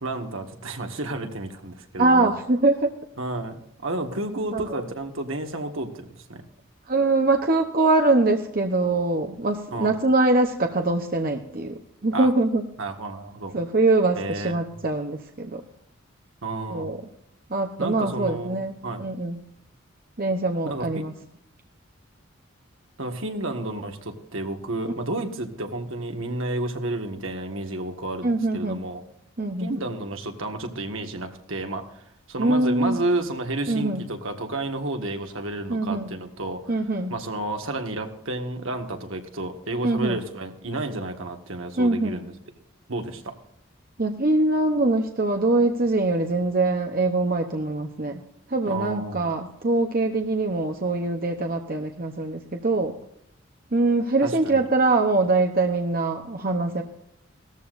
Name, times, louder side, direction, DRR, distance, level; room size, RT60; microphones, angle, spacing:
voice 1, 0.0-2.3 3.2-6.4 9.7-9.9 12.1-12.3 12.8-13.6 14.1-14.8 16.4-16.9 17.8-19.0 20.6-20.9 23.0-29.0 29.6-36.8 37.1-42.3 42.9-43.4 48.6-49.3 54.2-54.7, right 2 dB, 75° right, 5 dB, 1.7 m, -31 dB
voice 2, 2.0-2.9 4.5-4.6 6.9-12.6 13.5-15.6 16.7-17.0 17.5-19.4 20.2-21.1 28.2-28.9 29.4-29.7 32.4-33.0 33.7-34.0 35.7-36.1 36.7-37.1 39.8-40.2 41.8-42.2 44.0-48.2 48.5-52.9 53.7-56.8, right 2 dB, 45° right, 4 dB, 0.9 m, -23 dB
18.0 x 14.0 x 2.6 m, 0.74 s
head